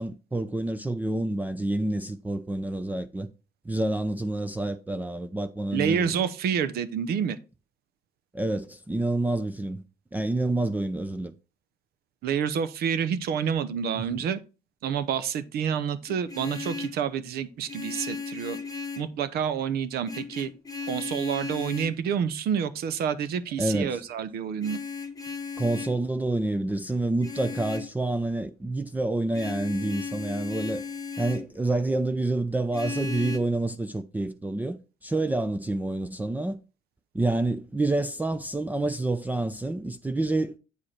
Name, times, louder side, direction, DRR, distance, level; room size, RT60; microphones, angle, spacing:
voice 1, 0.0-3.3 3.7-6.1 8.3-9.8 10.1-11.3 14.1-14.2 23.6-24.0 25.6-30.8 31.2-36.6 37.1-40.6, right 2 dB, 10° right, 0.5 m, -28 dB
voice 2, 5.7-7.4 12.2-14.4 14.8-18.6 19.0-20.5 20.9-24.8, right 7 dB, 70° right, 0.9 m, -28 dB
Vehicle horn car horn honking, 16.1-17.0 17.7-19.2 20.0-22.0 24.6-26.0 27.2-27.9 29.3-31.5 32.7-33.4, left 5 dB, 20° left, 1.0 m, -36 dB
8.4 x 4.9 x 4.3 m
cardioid pair, 110°, 17 cm